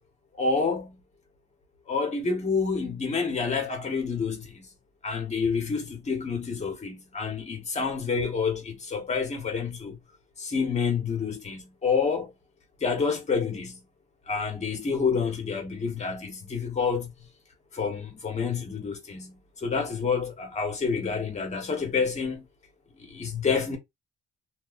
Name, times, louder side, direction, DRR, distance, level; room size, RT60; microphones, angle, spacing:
voice 1, 0.3-1.0 1.9-4.7 5.0-10.0 10.4-12.3 12.8-13.8 14.3-17.3 17.7-22.5 23.0-23.8, left 5 dB, 35° left, 1.3 m, -28 dB
2.6 x 2.5 x 2.5 m
cardioid pair, 90°, 20 cm